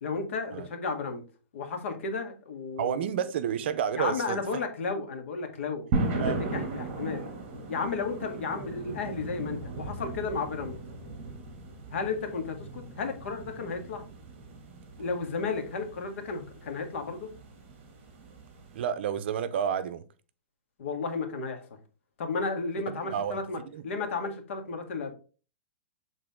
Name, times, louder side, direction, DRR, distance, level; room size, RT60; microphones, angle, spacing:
voice 1, 0.0-1.3 1.5-3.1 3.9-7.3 7.7-10.8 11.9-14.1 15.0-17.3 20.8-21.6 22.2-25.1, left 4 dB, 80° left, 1.8 m, -33 dB
voice 2, 2.8-4.4 6.2-6.4 18.7-20.0 23.0-23.4 23.7-23.8, right 8 dB, 60° right, 0.7 m, -30 dB
sound 1, 5.9-18.8, right 3 dB, 35° right, 2.1 m, -37 dB
7.5 x 3.9 x 3.6 m
supercardioid pair, 165°, 7 cm